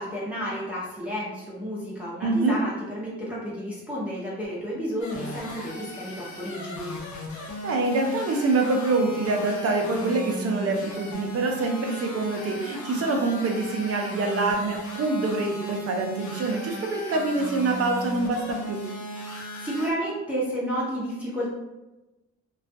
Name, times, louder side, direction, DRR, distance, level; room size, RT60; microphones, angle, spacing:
voice 1, 0.0-6.9 19.6-21.5, equal, 5° right, -7 dB, 0.7 m, -31 dB
voice 2, 2.2-2.6 7.6-18.8, right 3 dB, 50° right, 2 dB, 0.6 m, -25 dB
sound 1, 5.0-19.9, equal, 70° left, 0.7 m, -37 dB
2.4 x 2.3 x 2.6 m, 1.0 s
cardioid pair, 90°, 30 cm